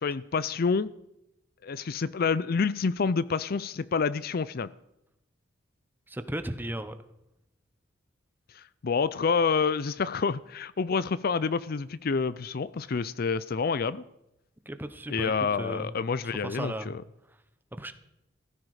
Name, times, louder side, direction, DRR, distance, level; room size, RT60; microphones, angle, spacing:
voice 1, 0.0-0.9 1.6-4.7 8.6-14.0 15.1-17.0, left 5 dB, 50° left, 17 dB, 0.5 m, -28 dB
voice 2, 6.1-6.9 14.6-16.0 16.2-16.9 17.8-17.9, right 1 dB, 10° right, 10 dB, 1.0 m, -35 dB
16.0 x 14.5 x 4.9 m, 0.85 s
head